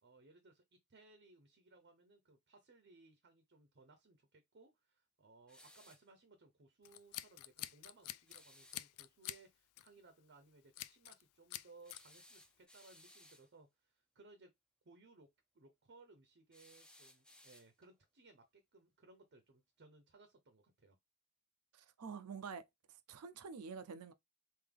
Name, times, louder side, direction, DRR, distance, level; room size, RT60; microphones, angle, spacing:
voice 1, 0.0-14.5 14.8-15.3 15.5-21.0, right 3 dB, 50° right, 0.7 m, -63 dB
sound 1, 5.5-6.1 8.3-8.8 11.8-13.5 16.5-18.0, left 1 dB, 5° left, 0.6 m, -62 dB
Scissors, 6.9-8.4 8.7-9.4 9.8-10.0 10.8-11.2 11.5-12.0, left 15 dB, 75° left, 0.3 m, -47 dB
voice 2, 21.7-22.7 23.1-24.1, right 5 dB, 80° right, 0.5 m, -47 dB
3.7 x 2.7 x 3.4 m
head